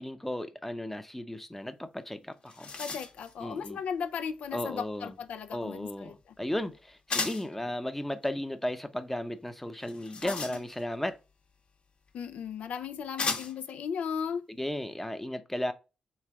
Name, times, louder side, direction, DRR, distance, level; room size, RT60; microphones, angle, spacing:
voice 1, 0.0-2.7 3.4-3.8 4.5-5.2 5.5-11.2 14.5-15.7, left 1 dB, 10° left, 0.6 m, -35 dB
sound 1, 2.0-2.1 2.3-3.3 7.1-7.6 9.8-11.0 12.1-12.2 13.2-13.7, left 4 dB, 55° left, 1.0 m, -35 dB
voice 2, 2.8-6.1 10.2-10.6 12.1-14.4, left 7 dB, 85° left, 0.4 m, -36 dB
3.3 x 3.1 x 4.6 m
cardioid pair, 75°, 2 cm